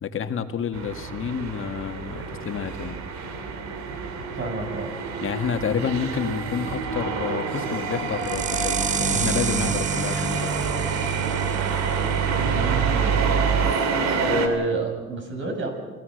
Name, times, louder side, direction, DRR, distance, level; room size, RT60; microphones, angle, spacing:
voice 1, 0.0-3.0 5.2-10.7, left 7 dB, 45° left, 7 dB, 1.9 m, -29 dB
sound 1, 0.7-14.5, right 5 dB, 70° right, 2.8 m, -28 dB
voice 2, 4.3-5.2 12.3-13.1 14.1-15.7, right 2 dB, 40° right, 3 dB, 7.2 m, -29 dB
sound 2, 6.6-13.7, right 7 dB, 25° right, 0.6 m, -27 dB
28.0 x 15.5 x 6.6 m, 1.4 s
supercardioid pair, 80°, 29 cm